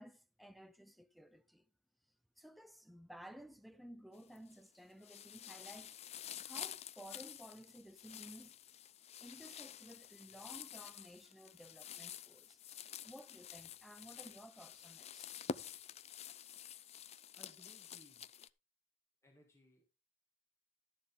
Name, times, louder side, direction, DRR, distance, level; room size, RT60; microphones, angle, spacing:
voice 1, 0.0-1.7 2.4-8.5 9.2-15.4, equal, ahead, 0.8 m, -56 dB
sound 1, 4.1-4.7 5.0-18.5, left 8 dB, 35° left, 0.4 m, -49 dB
voice 2, 17.3-18.3 19.2-19.8, equal, 15° left, 2.4 m, -64 dB
12.5 x 7.4 x 3.7 m
head